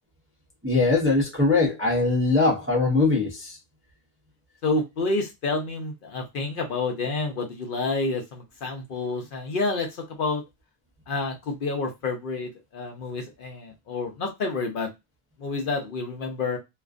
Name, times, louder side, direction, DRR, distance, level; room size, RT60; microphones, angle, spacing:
voice 1, 0.6-3.6, left 3 dB, 15° right, 0.4 m, -21 dB
voice 2, 4.6-10.4 11.1-14.9 15.4-16.6, left 3 dB, 60° left, 0.7 m, -29 dB
2.4 x 2.2 x 2.4 m
omnidirectional pair, 1.1 m